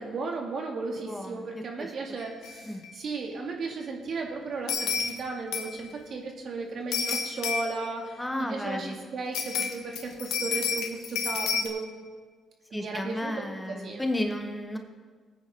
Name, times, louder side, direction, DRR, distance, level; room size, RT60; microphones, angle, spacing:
voice 1, 0.0-11.9 12.7-14.0, right 3 dB, 55° right, 0 dB, 2.4 m, -35 dB
voice 2, 1.1-1.9 2.6-2.9 8.2-9.0 12.7-14.8, left 1 dB, 10° left, 4 dB, 1.2 m, -33 dB
sound 1, 2.4-2.5 2.8-2.9 4.7-5.2 5.5-5.9 6.9-7.9 9.3-11.7, left 6 dB, 85° left, 1.4 m, -30 dB
19.0 x 9.2 x 3.8 m, 1.5 s
cardioid pair, 90°, 0 cm